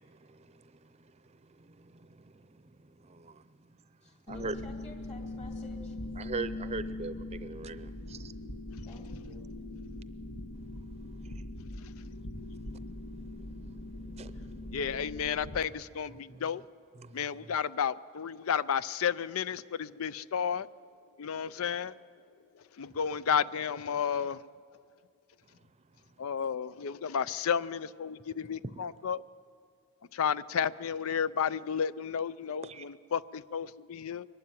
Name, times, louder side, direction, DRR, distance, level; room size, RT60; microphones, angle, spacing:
voice 1, 1.6-1.9 3.1-3.4 4.3-4.5 6.2-8.3 14.2-14.8 16.3-16.4 17.0-17.2 28.7-28.8 32.7-32.8, right 3 dB, 30° right, 0.6 m, -40 dB
voice 2, 4.0-6.0 8.8-9.5, left 2 dB, 30° left, 2.7 m, -52 dB
sound 1, 4.3-15.6, left 2 dB, 65° left, 1.3 m, -41 dB
voice 3, 14.7-16.6 17.1-20.7 21.2-21.9 22.8-24.4 26.2-29.2 30.1-34.3, left 7 dB, 90° left, 0.5 m, -32 dB
22.5 x 12.0 x 9.8 m
head